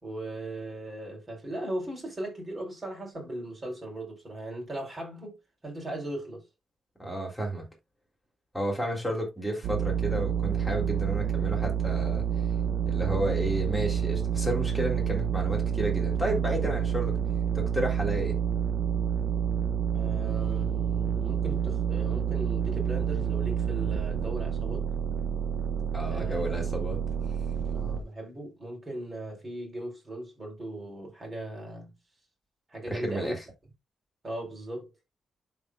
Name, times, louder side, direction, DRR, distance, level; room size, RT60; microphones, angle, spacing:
voice 1, 0.0-5.4 5.6-6.5 19.9-24.8 26.1-26.4 27.7-31.9 32.7-33.4 34.2-34.9, right 1 dB, 25° right, 4.3 m, -38 dB
voice 2, 7.0-7.7 8.5-12.2 12.8-17.2 17.5-18.4 25.9-27.0 32.9-33.4, right 1 dB, ahead, 3.3 m, -32 dB
sound 1, 9.6-28.0, right 8 dB, 70° right, 1.1 m, -28 dB
12.0 x 4.5 x 2.4 m
cardioid pair, 120°, 0 cm